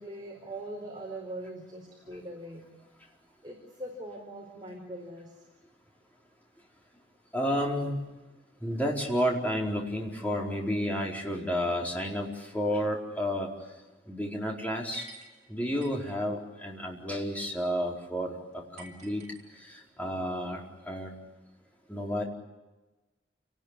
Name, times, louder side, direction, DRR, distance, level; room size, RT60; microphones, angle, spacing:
voice 1, 0.0-2.7 3.4-5.4, right 1 dB, 25° right, -1 dB, 4.4 m, -41 dB
voice 2, 7.3-8.0 8.6-12.3 12.5-13.5 14.1-15.1 15.5-18.4 18.7-19.2 20.0-20.6 20.9-21.1 21.9-22.2, equal, 10° left, -2 dB, 4.6 m, -31 dB
sound 1, 14.9-16.2 18.8-19.9, right 2 dB, 40° right, 5.9 m, -51 dB
29.5 x 19.5 x 10.0 m, 1.1 s
head